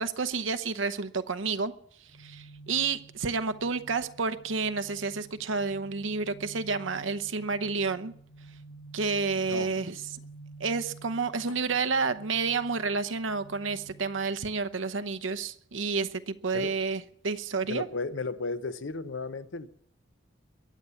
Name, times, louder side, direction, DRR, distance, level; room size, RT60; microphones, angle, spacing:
voice 1, 0.0-1.7 2.2-8.1 8.9-10.0 10.6-17.9, right 4 dB, 70° right, 0.9 m, -30 dB
sound 1, 2.1-15.1, right 3 dB, 85° left, 5.5 m, -51 dB
voice 2, 9.4-9.9 11.5-11.6 16.5-16.7 17.7-19.7, left 3 dB, 70° left, 0.8 m, -35 dB
22.0 x 8.5 x 7.0 m
head